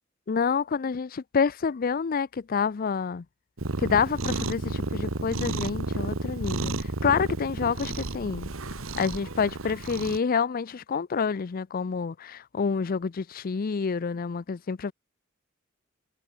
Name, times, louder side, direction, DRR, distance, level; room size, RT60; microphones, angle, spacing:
voice 1, 0.3-3.2 3.8-8.5 8.9-14.9, left 5 dB, 45° left, 0.4 m, -28 dB
Cat, 3.6-10.2, right 2 dB, 85° right, 1.7 m, -32 dB
head